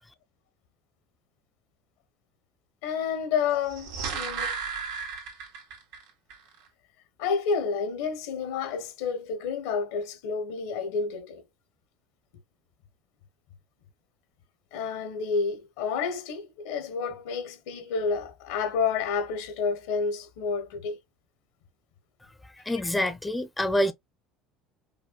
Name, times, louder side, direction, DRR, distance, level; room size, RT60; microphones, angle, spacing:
voice 1, 2.8-4.5 7.2-11.4 14.7-21.0 22.8-23.1, left 5 dB, 85° left, 1.1 m, -30 dB
sound 1, 3.5-6.0 6.3-6.4, right 5 dB, 80° right, 1.7 m, -34 dB
voice 2, 22.7-23.9, left 1 dB, 10° left, 0.5 m, -26 dB
5.4 x 2.2 x 2.3 m
supercardioid pair, 110°, 0 cm